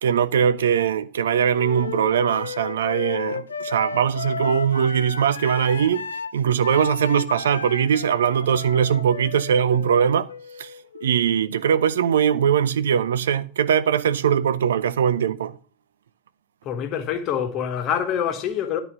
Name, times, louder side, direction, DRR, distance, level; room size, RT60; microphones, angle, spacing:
voice 1, 0.0-6.0 6.3-10.3 10.6-10.7 11.0-15.6, right 8 dB, 65° right, 0.4 m, -21 dB
Wind instrument woodwind instrument, 1.5-11.3, left 6 dB, 70° left, 0.6 m, -34 dB
voice 2, 16.6-18.8, left 8 dB, 35° left, 1.4 m, -25 dB
10.5 x 4.0 x 6.6 m
figure-of-eight pair, 90°, 0 cm